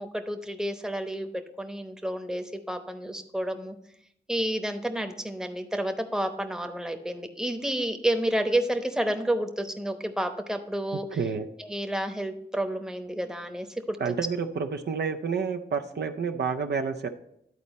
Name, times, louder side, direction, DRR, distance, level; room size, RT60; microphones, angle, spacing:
voice 1, 0.0-3.8 4.3-11.2 11.6-14.0, right 1 dB, 5° right, 6 dB, 0.8 m, -30 dB
voice 2, 11.1-11.5 14.0-17.1, right 5 dB, 65° right, 5 dB, 0.5 m, -29 dB
11.0 x 4.2 x 4.1 m, 0.78 s
cardioid pair, 50°, 19 cm